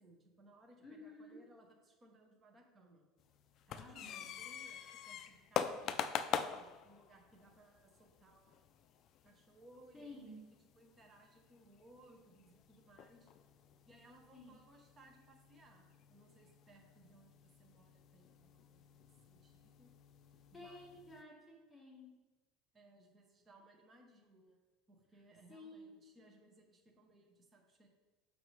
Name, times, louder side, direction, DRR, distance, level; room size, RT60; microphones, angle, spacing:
voice 1, 0.0-3.1 3.7-8.5 9.2-10.4 10.7-13.3 13.9-19.0 19.3-19.9 20.5-20.9 22.7-24.6 24.9-27.9, right 2 dB, 20° right, 2 dB, 0.9 m, -64 dB
voice 2, 0.8-1.4 3.8-4.3 9.9-10.4 14.3-14.5 20.5-22.1 25.5-25.9, left 1 dB, 5° left, -5 dB, 1.7 m, -53 dB
sound 1, 3.2-21.2, left 8 dB, 40° left, 0.3 m, -46 dB
6.7 x 5.2 x 3.2 m, 1.2 s
cardioid pair, 160°, 0 cm